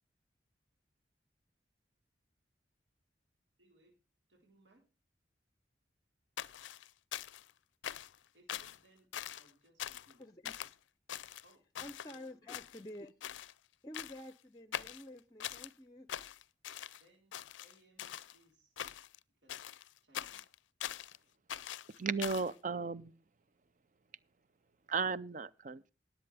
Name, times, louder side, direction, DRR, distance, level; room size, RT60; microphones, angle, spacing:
voice 1, 3.6-4.0 4.3-4.9 8.3-10.3 11.4-11.6 12.0-12.3 17.0-18.7 19.3-19.6 20.0-20.5, right 1 dB, 75° right, 4.1 m, -67 dB
sound 1, 6.4-7.5 7.8-8.2 8.5-8.8 9.1-9.5 9.8-10.1 10.4-10.7 11.1-12.2 12.5-13.0 13.2-13.5 13.9-14.3 14.7-15.7 16.1-17.0 17.3-18.4 18.8-19.2 19.5-21.2 21.5-22.5, left 10 dB, 90° left, 0.5 m, -43 dB
voice 2, 10.2-10.5 11.8-13.1 13.8-16.1, left 1 dB, 20° left, 0.6 m, -50 dB
voice 3, 22.0-23.1 24.9-25.9, right 4 dB, 45° right, 0.5 m, -35 dB
19.5 x 7.9 x 3.4 m
head